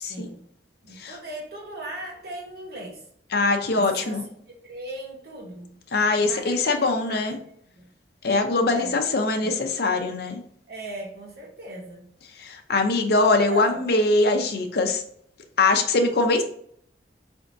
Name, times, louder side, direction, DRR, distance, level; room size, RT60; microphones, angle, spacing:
voice 1, 0.0-0.5 0.8-3.1 3.7-5.8 6.2-7.9 8.7-9.7 10.7-12.1 13.5-13.8, right 1 dB, 60° right, -1 dB, 1.0 m, -39 dB
voice 2, 3.3-4.2 5.9-7.4 8.2-10.4 12.4-15.0 15.6-16.4, left 3 dB, 60° left, 4 dB, 0.6 m, -22 dB
4.4 x 3.5 x 2.6 m, 0.67 s
head